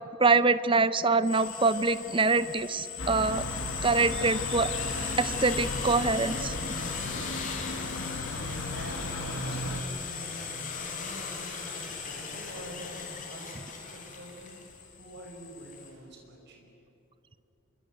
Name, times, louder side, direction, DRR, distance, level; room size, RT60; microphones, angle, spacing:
voice 1, 0.2-3.4 3.8-4.7 5.1-6.5, right 3 dB, 25° right, 14 dB, 0.6 m, -25 dB
sound 1, 1.2-15.9, left 5 dB, 35° left, 3.9 m, -38 dB
sound 2, 3.0-9.8, left 2 dB, 60° left, 1.9 m, -36 dB
voice 2, 8.0-14.6 15.0-16.7, right 1 dB, 50° right, 2 dB, 5.5 m, -48 dB
26.5 x 23.5 x 9.3 m, 2.9 s
head